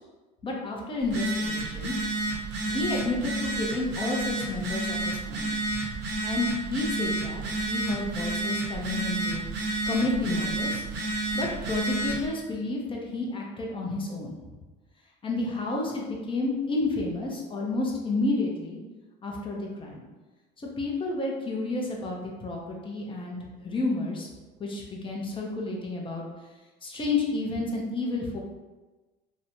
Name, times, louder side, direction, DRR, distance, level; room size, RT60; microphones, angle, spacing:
voice 1, 0.4-1.9 2.7-9.4 9.9-10.8 11.3-14.3 15.2-18.8 19.2-20.0 20.8-23.4 23.6-24.3 24.6-26.2 26.8-28.4, left 2 dB, 25° left, -1 dB, 0.6 m, -31 dB
Telephone, 1.0-12.3, right 2 dB, 60° right, 0.8 m, -30 dB
2.6 x 2.2 x 2.9 m, 1.2 s
supercardioid pair, 95°, 20 cm